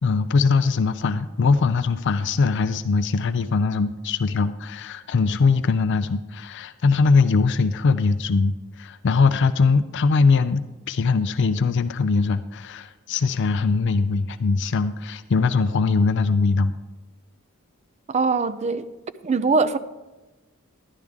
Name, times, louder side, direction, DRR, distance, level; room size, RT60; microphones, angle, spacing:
voice 1, 0.0-16.7, left 4 dB, 55° left, 0.4 m, -21 dB
voice 2, 18.1-18.9 19.2-19.8, right 4 dB, 30° right, 0.5 m, -22 dB
12.0 x 11.0 x 3.6 m
head